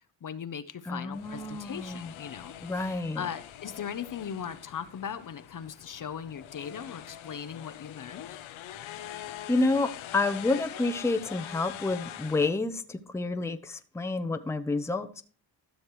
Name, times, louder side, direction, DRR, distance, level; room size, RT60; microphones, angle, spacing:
voice 1, 0.2-8.4, left 8 dB, 45° left, 0.7 m, -39 dB
voice 2, 0.8-2.1 2.6-3.3 9.5-15.2, left 3 dB, 5° left, 0.7 m, -29 dB
sound 1, 1.1-12.5, left 12 dB, 90° left, 0.8 m, -44 dB
13.0 x 6.4 x 3.1 m
cardioid pair, 65°, 46 cm